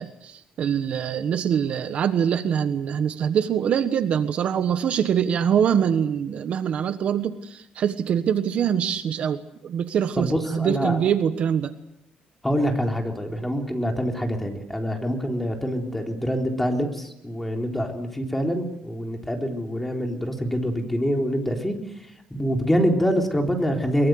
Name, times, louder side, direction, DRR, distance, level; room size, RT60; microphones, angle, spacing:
voice 1, 0.0-11.7, right 8 dB, 50° right, 10 dB, 1.3 m, -24 dB
voice 2, 10.2-11.0 12.4-24.1, equal, 5° left, 2 dB, 3.9 m, -25 dB
23.5 x 23.0 x 7.9 m, 0.80 s
cardioid pair, 145°, 3 cm